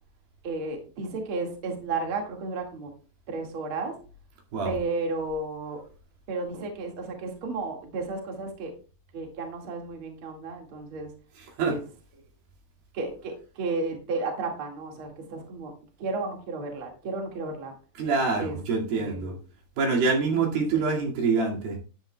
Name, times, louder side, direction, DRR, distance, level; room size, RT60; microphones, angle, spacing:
voice 1, 0.4-2.9 3.3-4.0 4.6-5.8 6.3-8.7 9.1-11.1 11.6-11.8 12.9-15.7 16.0-17.7 18.4-18.6 19.0-19.4 20.3-21.1, right 3 dB, 40° right, 2 dB, 2.4 m, -33 dB
voice 2, 11.4-11.8 18.0-19.3 19.8-21.8, right 4 dB, 75° right, -1 dB, 4.0 m, -25 dB
13.0 x 10.5 x 2.3 m, 0.37 s
omnidirectional pair, 4.3 m